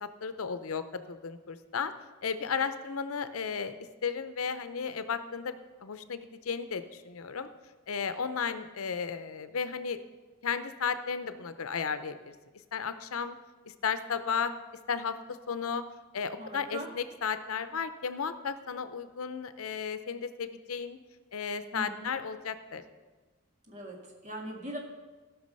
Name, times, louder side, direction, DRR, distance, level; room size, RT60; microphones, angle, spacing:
voice 1, 0.0-1.9 2.2-3.8 4.0-7.5 7.9-10.0 10.4-12.3 12.7-13.4 13.8-14.5 14.9-15.1 15.5-15.8 16.1-21.0 21.3-22.8, left 6 dB, 90° left, 11 dB, 0.6 m, -34 dB
voice 2, 16.4-16.9 21.7-22.1 23.7-24.8, right 1 dB, 35° right, 1 dB, 1.8 m, -40 dB
14.5 x 6.0 x 5.4 m, 1.3 s
head